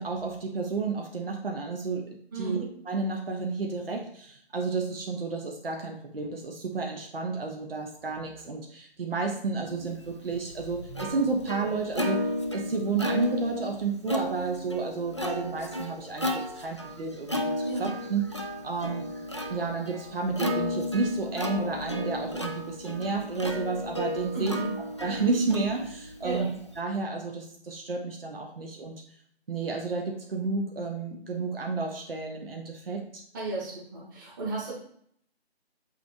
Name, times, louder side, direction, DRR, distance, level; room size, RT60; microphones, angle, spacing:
voice 1, 0.0-2.0 2.3-17.4 17.8-19.1 19.5-24.6 25.0-26.5 26.8-28.9 29.5-33.1, right 4 dB, 60° right, 2 dB, 1.1 m, -31 dB
voice 2, 2.3-2.7 17.6-17.9 24.3-24.7 26.2-26.5 33.3-34.7, right 3 dB, 20° right, -5 dB, 1.6 m, -33 dB
Plucked string instrument, 10.1-26.8, left 1 dB, 30° left, 0.4 m, -34 dB
8.2 x 3.2 x 3.5 m, 0.64 s
figure-of-eight pair, 155°, 32 cm